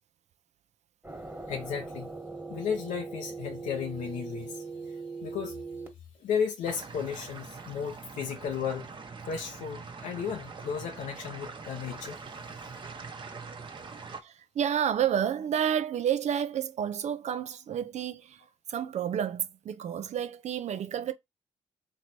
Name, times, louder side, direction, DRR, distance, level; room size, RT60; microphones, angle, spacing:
sound 1, 1.0-5.9, right 4 dB, 15° right, 1.6 m, -40 dB
voice 1, 1.5-2.1 2.5-5.6 6.2-8.9 9.3-12.2, left 7 dB, 75° left, 0.8 m, -34 dB
sound 2, 6.6-14.2, right 4 dB, 40° right, 1.1 m, -43 dB
voice 2, 14.2-21.1, right 9 dB, 65° right, 0.7 m, -30 dB
3.2 x 3.1 x 4.3 m
supercardioid pair, 50°, 13 cm